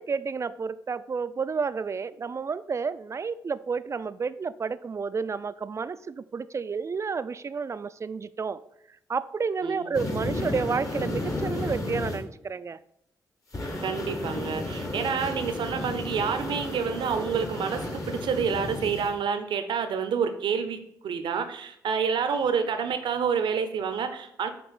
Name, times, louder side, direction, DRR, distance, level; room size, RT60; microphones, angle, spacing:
voice 1, 0.0-8.6 9.1-12.8, right 5 dB, 35° right, 15 dB, 0.4 m, -31 dB
sound 1, 9.9-12.2 13.5-19.1, left 2 dB, 40° left, 1.7 m, -32 dB
voice 2, 13.8-20.8 21.0-24.5, right 6 dB, 70° right, 8 dB, 0.7 m, -28 dB
6.0 x 3.0 x 5.6 m, 0.77 s
supercardioid pair, 45°, 8 cm